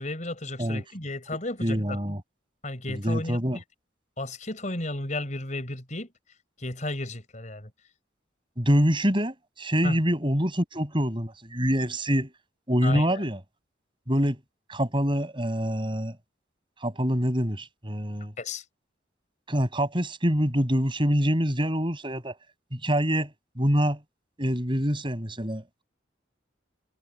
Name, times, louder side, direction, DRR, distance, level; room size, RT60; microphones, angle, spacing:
voice 1, 0.0-2.0 2.6-3.6 4.2-6.1 6.6-7.7 9.8-10.0 12.8-13.2 18.4-18.6, left 2 dB, 40° left, 5.5 m, -33 dB
voice 2, 1.6-2.2 2.9-3.6 8.6-12.3 12.7-13.4 14.1-14.4 14.7-16.2 16.8-18.3 19.5-22.3 22.7-24.0 24.4-25.8, equal, 25° right, 7.2 m, -25 dB
head